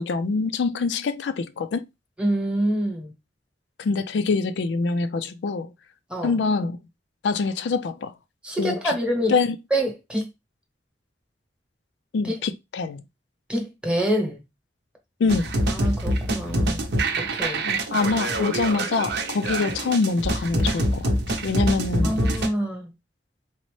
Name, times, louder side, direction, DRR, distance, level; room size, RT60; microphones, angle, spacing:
voice 1, 0.0-1.8 3.8-5.7 6.2-6.8 7.2-8.1 8.6-8.9 9.3-9.6 12.1-13.0 15.2-15.5 17.6-22.2, left 4 dB, 80° left, 0.4 m, -25 dB
voice 2, 2.2-3.1 6.1-6.3 8.4-9.3 9.7-10.3 12.2-12.3 13.5-14.4 15.7-16.9 17.2-17.6 22.0-22.9, right 1 dB, 5° right, 0.9 m, -26 dB
sound 1, 15.3-22.5, right 1 dB, 70° right, 0.7 m, -25 dB
3.9 x 2.1 x 3.0 m
head